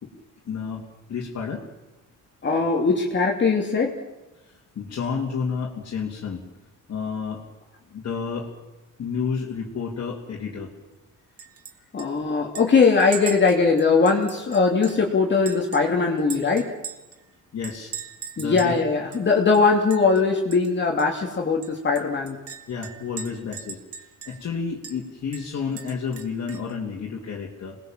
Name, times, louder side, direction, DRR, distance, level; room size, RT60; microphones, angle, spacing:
voice 1, 0.5-1.6 4.4-6.4 6.9-7.4 7.9-8.5 9.0-10.7 17.5-17.9 18.4-18.8 22.7-27.8, left 5 dB, 50° left, -2 dB, 3.2 m, -31 dB
voice 2, 2.4-4.0 11.9-16.7 18.4-22.4, left 4 dB, 35° left, 1 dB, 2.9 m, -20 dB
Chink clink, 11.4-11.7 12.0-12.1 12.6-15.1 15.5-17.2 17.6-18.8 19.1-19.2 19.5-20.2 20.5-20.7 21.0-21.1 21.6-24.5 24.8-25.0 25.3-26.7, right 6 dB, 45° right, 2.5 m, -39 dB
28.0 x 20.5 x 7.6 m, 1.0 s
cardioid pair, 135°, 32 cm